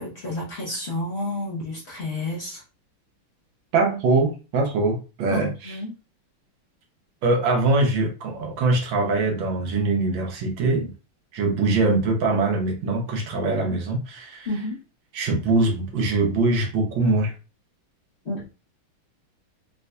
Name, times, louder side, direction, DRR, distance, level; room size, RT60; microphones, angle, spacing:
voice 1, 0.0-2.6 5.3-5.9 14.4-14.8 18.2-18.4, left 2 dB, 50° left, -5 dB, 0.8 m, -30 dB
voice 2, 3.7-5.8 7.2-10.9 11.3-14.5 15.1-17.3, right 3 dB, 70° right, 2 dB, 1.5 m, -22 dB
4.1 x 2.6 x 2.2 m, 0.32 s
omnidirectional pair, 2.4 m